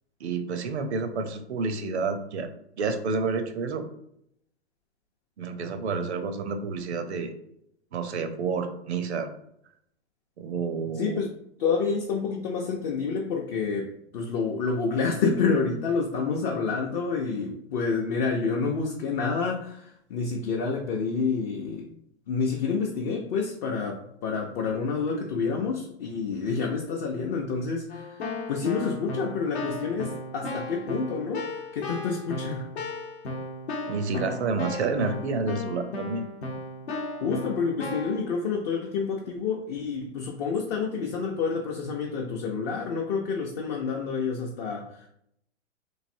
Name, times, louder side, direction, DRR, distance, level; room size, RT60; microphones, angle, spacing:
voice 1, 0.2-2.5 2.8-3.8 5.4-7.3 7.9-9.3 10.4-11.2 33.9-36.2, right 4 dB, 75° right, 7 dB, 0.6 m, -29 dB
voice 2, 11.0-21.9 22.3-28.2 28.5-31.5 31.7-32.7 37.2-45.1, left 5 dB, 40° left, 0 dB, 0.5 m, -28 dB
Keyboard (musical), 27.9-38.2, left 2 dB, 70° left, 0.8 m, -35 dB
3.1 x 2.6 x 2.6 m, 0.74 s
hypercardioid pair, 110°, 33 cm